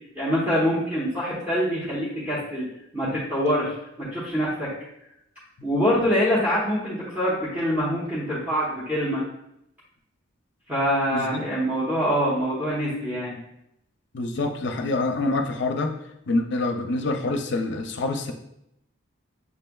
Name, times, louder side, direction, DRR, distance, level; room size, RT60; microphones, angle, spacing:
voice 1, 0.1-2.7 2.9-4.7 5.6-9.2 10.7-13.4, equal, 10° right, -9 dB, 0.9 m, -25 dB
voice 2, 11.1-11.4 14.1-15.9 16.3-18.3, left 2 dB, 60° left, 5 dB, 0.5 m, -26 dB
6.9 x 3.2 x 2.3 m, 0.80 s
head